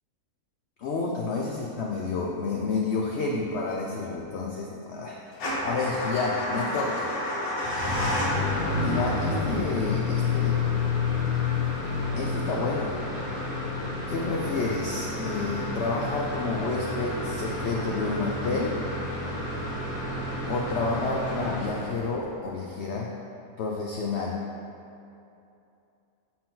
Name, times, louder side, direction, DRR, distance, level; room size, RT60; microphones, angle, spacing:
voice 1, 0.8-5.2 5.6-7.1 8.7-10.6 12.1-13.0 14.1-18.8 20.5-23.1 23.6-24.4, left 4 dB, 65° left, -2 dB, 0.7 m, -29 dB
Motor vehicle (road) / Engine starting / Idling, 5.3-22.3, left 2 dB, 80° left, 1.6 m, -29 dB
7.6 x 4.3 x 3.7 m, 2.7 s
omnidirectional pair, 1.5 m